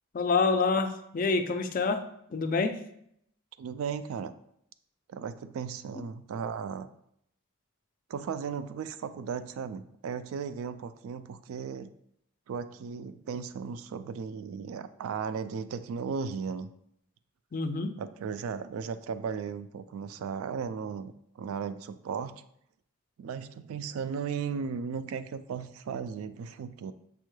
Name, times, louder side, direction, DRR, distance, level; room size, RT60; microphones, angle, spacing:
voice 1, 0.1-2.0 2.3-2.8 17.5-17.9, left 4 dB, 40° left, 8 dB, 0.4 m, -27 dB
voice 2, 3.6-4.3 5.1-6.9 8.1-11.9 12.5-16.7 18.0-22.4 23.2-26.9, right 6 dB, 90° right, 14 dB, 0.3 m, -36 dB
7.2 x 3.1 x 2.2 m, 0.72 s
head